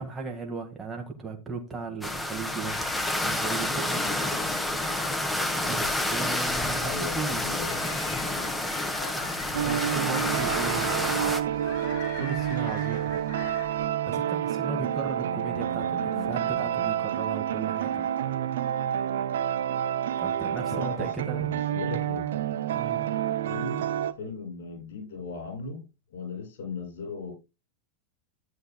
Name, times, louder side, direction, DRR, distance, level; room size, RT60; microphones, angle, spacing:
voice 1, 0.0-2.9 3.2-4.0 5.6-7.6 9.3-10.9 12.2-13.1 14.1-18.1 20.2-21.5 22.7-23.0, right 4 dB, 15° right, 1.8 m, -36 dB
sound 1, 2.0-11.4, left 1 dB, 5° left, 1.7 m, -29 dB
sound 2, 2.6-13.9, left 5 dB, 45° left, 4.0 m, -41 dB
voice 2, 6.8-7.8 16.0-16.3 20.7-22.2 23.5-23.8 24.2-25.8 26.1-27.3, left 4 dB, 60° left, 6.7 m, -37 dB
sound 3, 9.5-24.1, right 10 dB, 60° right, 0.7 m, -29 dB
13.5 x 10.0 x 2.2 m
figure-of-eight pair, 90°, 0 cm